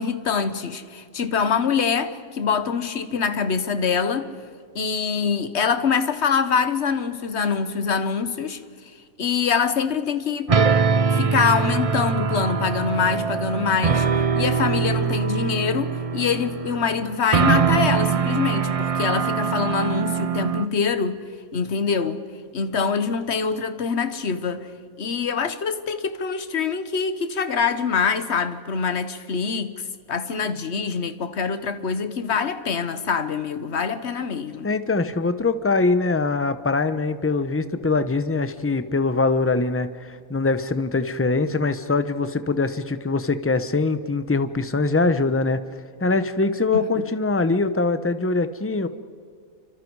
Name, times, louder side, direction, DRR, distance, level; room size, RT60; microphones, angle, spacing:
voice 1, 0.0-4.3 4.7-8.6 9.2-10.5 11.1-14.1 14.3-21.2 21.5-22.2 22.5-24.7 25.0-34.7, left 6 dB, 50° left, 1.4 m, -24 dB
sound 1, 10.5-20.7, right 6 dB, 40° right, 0.5 m, -23 dB
voice 2, 34.6-45.6 46.0-48.9, left 3 dB, 15° left, 0.7 m, -23 dB
29.0 x 25.5 x 4.8 m
omnidirectional pair, 1.5 m